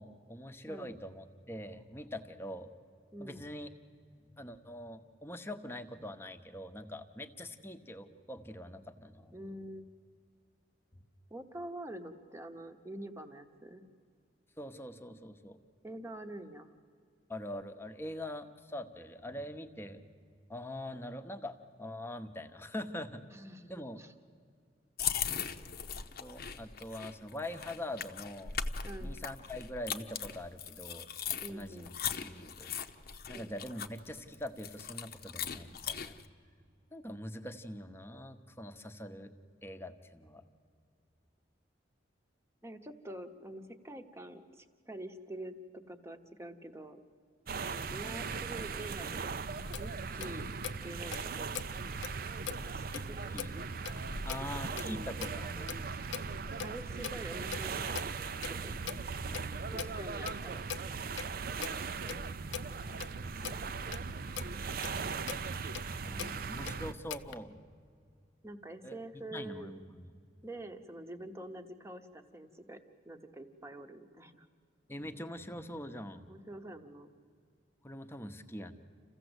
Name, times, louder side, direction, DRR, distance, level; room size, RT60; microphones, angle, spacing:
voice 1, 0.0-2.7 3.2-3.7 4.4-9.4 14.6-15.6 17.3-20.0 20.5-23.2 23.7-24.0 26.2-28.5 29.0-31.1 31.5-32.7 33.3-36.2 36.9-39.3 39.6-40.4 48.0-48.3 52.9-53.0 53.3-53.5 54.2-55.7 66.0-67.6 68.8-69.0 69.3-70.1 74.9-76.2 77.8-78.7, left 1 dB, 15° left, 7 dB, 0.9 m, -43 dB
voice 2, 3.1-3.4 9.3-9.9 11.3-13.8 15.8-16.7 23.3-24.1 28.8-29.1 31.4-31.9 33.3-33.5 42.6-47.0 47.7-49.3 49.8-50.5 50.8-51.7 52.5-53.4 54.4-54.5 54.8-55.6 56.6-58.8 59.7-60.6 61.9-62.4 63.5-63.8 68.4-69.7 70.4-72.8 73.1-74.5 76.3-77.1, right 1 dB, 15° right, 7 dB, 1.0 m, -46 dB
sound 1, 25.0-36.3, left 7 dB, 55° left, 0.8 m, -39 dB
sound 2, 47.5-66.9, right 5 dB, 50° right, 0.6 m, -39 dB
Clock, 49.6-67.4, left 7 dB, 85° left, 0.7 m, -45 dB
28.0 x 15.0 x 8.0 m, 2.3 s
head